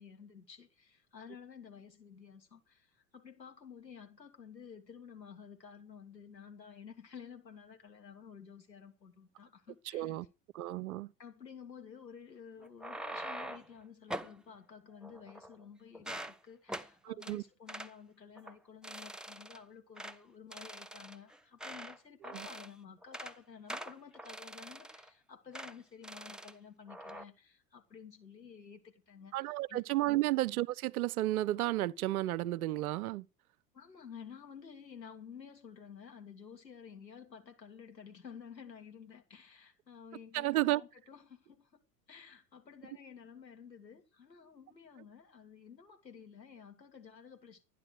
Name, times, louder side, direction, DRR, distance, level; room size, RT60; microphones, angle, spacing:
voice 1, 0.0-10.2 11.2-29.3 29.7-29.9 33.7-41.7 42.1-47.6, left 7 dB, 85° left, 2.5 m, -52 dB
voice 2, 9.9-10.3 10.5-11.1 17.0-17.4 22.3-22.5 29.3-33.3 40.3-40.8, right 17 dB, 60° right, 0.8 m, -32 dB
sound 1, 12.6-13.7 14.1-14.4 15.0-15.6 15.9-16.4 16.7-16.9 17.2-17.4 17.7-17.9 18.4-18.5 18.8-19.6 20.0-20.2 20.5-22.0 22.2-22.7 23.0-23.4 23.7-25.1 25.5-25.7 26.0-26.5 26.9-27.2, right 1 dB, ahead, 0.8 m, -44 dB
12.5 x 10.0 x 6.6 m
figure-of-eight pair, 75°, 49 cm